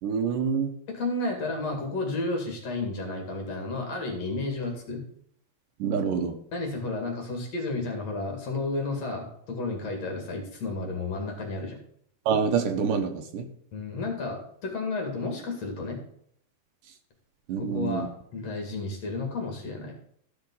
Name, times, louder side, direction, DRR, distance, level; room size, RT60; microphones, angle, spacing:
voice 1, 0.0-0.7 5.8-6.4 12.3-13.5 17.5-18.1, right 6 dB, 70° right, 6 dB, 2.3 m, -26 dB
voice 2, 0.9-5.0 6.5-11.8 13.7-16.0 17.6-19.9, left 3 dB, 45° left, 2 dB, 2.9 m, -32 dB
14.0 x 5.7 x 5.4 m, 0.66 s
omnidirectional pair, 4.5 m